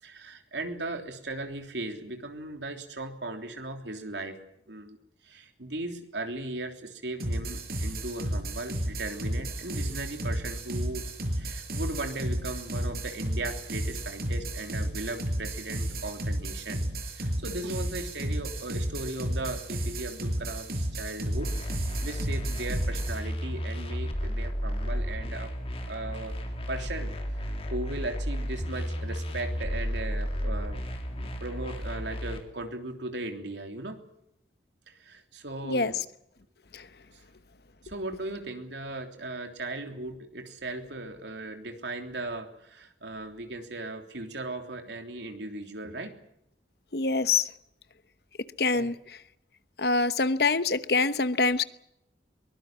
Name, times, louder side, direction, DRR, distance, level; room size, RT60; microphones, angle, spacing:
voice 1, 0.0-4.4 4.7-5.0 5.2-16.8 17.1-21.5 21.8-25.5 25.8-26.4 26.7-30.8 31.1-34.0 34.9-36.0 37.1-37.2 37.8-46.2 48.7-48.9, right 2 dB, 75° right, 3.3 m, -37 dB
sound 1, 7.2-23.2, right 1 dB, 55° right, 5.5 m, -33 dB
sound 2, 21.4-32.4, equal, 30° left, 3.5 m, -33 dB
voice 2, 46.9-47.5 48.6-49.0 49.8-51.6, left 4 dB, 60° left, 1.0 m, -25 dB
23.0 x 20.5 x 7.4 m
head